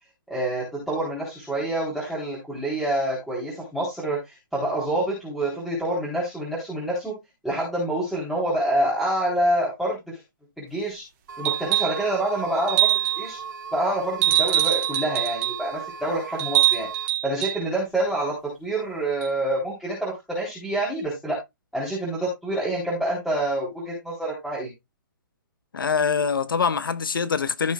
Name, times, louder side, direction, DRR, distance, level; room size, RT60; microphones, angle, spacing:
voice 1, 0.3-7.1 7.4-10.2 10.6-11.0 11.4-13.4 13.7-16.9 17.2-18.3 18.6-21.4 21.7-24.7, right 1 dB, ahead, 3.7 m, -27 dB
sound 1, 11.3-17.1, right 6 dB, 75° right, 2.9 m, -37 dB
sound 2, 11.4-12.0 12.7-13.3 14.2-15.6 16.4-17.6 19.2-19.3, right 14 dB, 40° right, 2.9 m, -23 dB
voice 2, 25.7-27.7, left 6 dB, 80° left, 1.1 m, -24 dB
15.0 x 6.4 x 2.3 m
hypercardioid pair, 140°, 11 cm